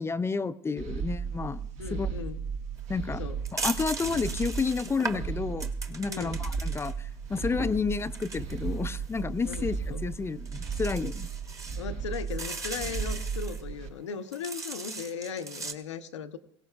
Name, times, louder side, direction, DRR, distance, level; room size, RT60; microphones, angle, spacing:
voice 1, 0.0-2.1 2.9-3.2 3.5-11.3, left 4 dB, 15° left, 14 dB, 0.4 m, -31 dB
sound 1, 0.8-13.9, right 5 dB, 50° right, 1.0 m, -35 dB
voice 2, 1.8-2.4 3.2-3.4 6.1-6.4 9.4-10.0 11.8-16.4, left 6 dB, 90° left, 8 dB, 0.8 m, -37 dB
sound 2, 2.8-2.9 3.4-6.9 7.3-9.2 9.5-9.6 10.1-10.2 10.5-11.8 12.1-13.6 14.3-15.7, right 3 dB, 20° right, 1.2 m, -38 dB
21.5 x 17.0 x 2.3 m, 0.69 s
hypercardioid pair, 85°, 15 cm